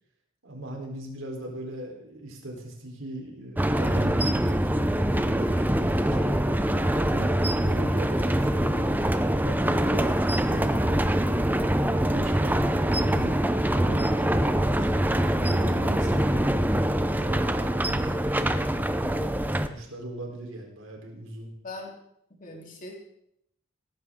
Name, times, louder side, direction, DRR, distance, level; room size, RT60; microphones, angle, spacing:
voice 1, 0.4-6.3 6.9-9.0 9.4-14.8 15.3-16.5 17.1-18.5 18.8-21.5 22.5-22.7, right 1 dB, 80° right, 1 dB, 3.9 m, -40 dB
sound 1, 3.6-19.7, right 1 dB, 10° right, 0.6 m, -24 dB
voice 2, 22.3-22.9, left 2 dB, 40° left, -1 dB, 3.5 m, -40 dB
17.0 x 14.5 x 3.8 m, 0.77 s
head